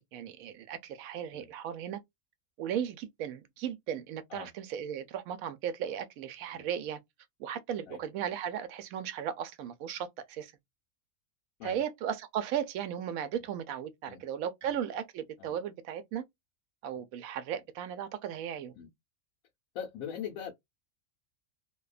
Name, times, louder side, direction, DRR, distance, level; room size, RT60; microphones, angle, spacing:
voice 1, 0.0-2.0 2.6-7.0 7.4-10.5 11.6-16.2 16.8-18.7, right 9 dB, 85° right, 1.0 m, -36 dB
voice 2, 19.7-20.5, left 8 dB, 90° left, 1.1 m, -41 dB
2.7 x 2.1 x 2.3 m
omnidirectional pair, 1.4 m